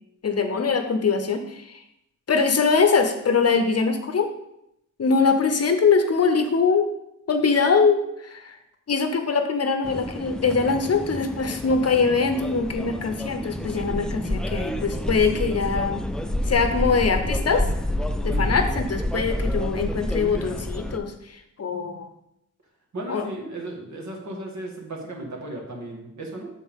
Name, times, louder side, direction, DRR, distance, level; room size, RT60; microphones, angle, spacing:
voice 1, 0.2-1.8 2.3-4.3 5.0-6.9 7.3-8.5 8.9-16.0 16.5-17.7 18.2-22.1 23.1-23.3, left 5 dB, 50° left, 7 dB, 0.8 m, -22 dB
sound 1, 9.8-21.0, left 1 dB, ahead, 0.3 m, -28 dB
voice 2, 18.3-18.6 22.9-26.5, right 1 dB, 55° right, 0 dB, 1.8 m, -35 dB
8.1 x 7.0 x 3.7 m, 0.81 s
wide cardioid pair, 140°, 33 cm